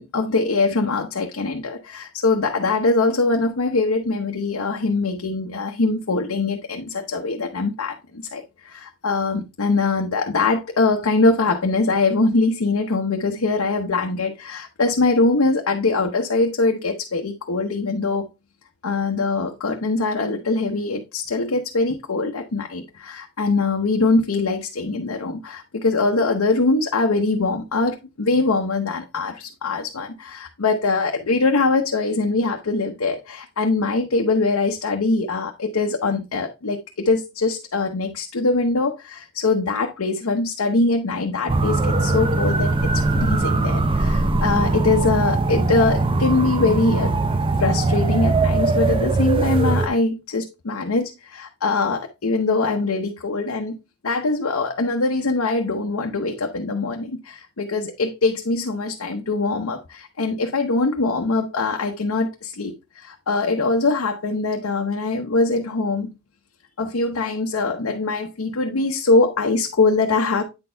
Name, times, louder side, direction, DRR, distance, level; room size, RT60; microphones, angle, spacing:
voice 1, 0.0-18.3 18.8-47.1 47.6-53.8 54.0-66.1 66.8-70.4, left 3 dB, 80° left, 0.8 m, -22 dB
sound 1, 41.5-49.9, right 2 dB, 25° right, 0.5 m, -20 dB
8.8 x 4.4 x 3.3 m
head